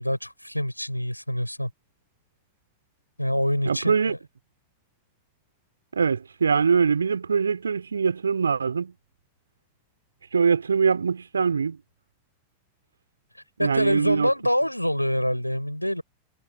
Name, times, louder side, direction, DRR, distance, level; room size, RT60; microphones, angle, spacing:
voice 1, 0.0-1.7 3.2-4.2 13.6-16.0, equal, 90° left, 6.0 m, -26 dB
voice 2, 3.6-4.1 5.9-8.9 10.3-11.8 13.6-14.3, right 5 dB, 75° right, 3.3 m, -23 dB
figure-of-eight pair, 90°, 0 cm